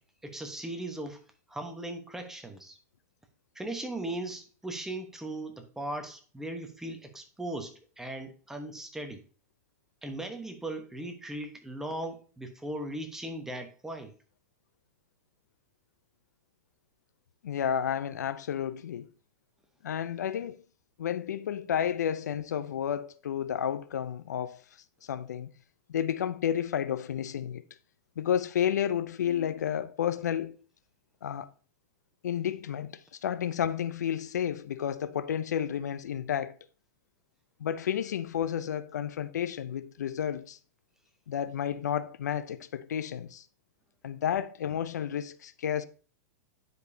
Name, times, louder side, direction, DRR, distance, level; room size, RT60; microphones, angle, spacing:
voice 1, 0.2-1.2 1.5-2.8 3.5-9.2 10.0-14.1, right 1 dB, 5° right, 1.0 m, -38 dB
voice 2, 17.4-19.1 19.8-20.6 21.0-24.6 25.0-25.5 25.9-27.6 28.2-30.6 31.2-31.5 32.2-36.6 37.6-40.6 41.3-43.4 44.0-45.8, left 9 dB, 85° left, 0.5 m, -31 dB
9.3 x 5.1 x 2.7 m
hypercardioid pair, 135°, 9 cm